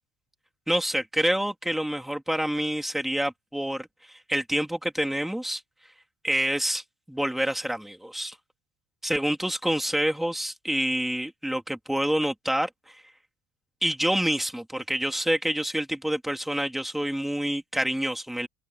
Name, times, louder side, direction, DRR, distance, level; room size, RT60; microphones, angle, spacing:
voice 1, 0.7-5.6 6.2-8.3 9.0-13.0 13.8-18.5, right 1 dB, ahead, 2.9 m, -27 dB
open air
cardioid pair, 120°, 8 cm